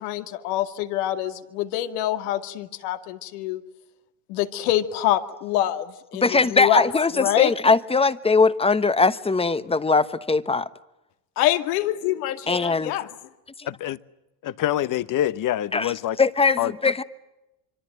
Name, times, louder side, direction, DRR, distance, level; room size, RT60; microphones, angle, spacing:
voice 1, 0.0-3.6 4.3-6.9 7.1-7.5 11.4-13.1, left 13 dB, 80° left, 2.3 m, -25 dB
voice 2, 6.1-10.7 12.5-12.9 15.7-15.9 16.2-17.0, left 4 dB, 15° left, 1.1 m, -20 dB
voice 3, 13.7-14.0 14.4-16.2 16.6-16.7, left 12 dB, 45° left, 1.2 m, -25 dB
26.0 x 24.5 x 9.1 m
supercardioid pair, 105°, 44 cm